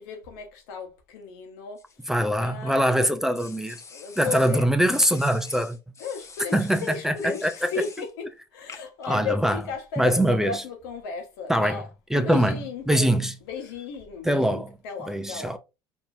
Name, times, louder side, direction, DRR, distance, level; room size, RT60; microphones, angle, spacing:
voice 1, 0.0-1.8 2.4-2.9 3.9-4.7 6.0-8.3 8.5-15.6, left 5 dB, 85° left, 1.2 m, -35 dB
sound 1, 1.8-2.8 3.3-4.6 4.9-8.1 8.7-9.1, left 5 dB, 25° left, 0.7 m, -46 dB
voice 2, 2.1-3.8 4.2-5.8 6.5-7.1 7.4-7.7 9.0-9.6 10.0-10.6 11.5-11.8 12.1-13.3 14.2-14.7 15.1-15.6, right 1 dB, 5° right, 0.5 m, -23 dB
4.5 x 2.9 x 2.6 m
supercardioid pair, 85°, 11 cm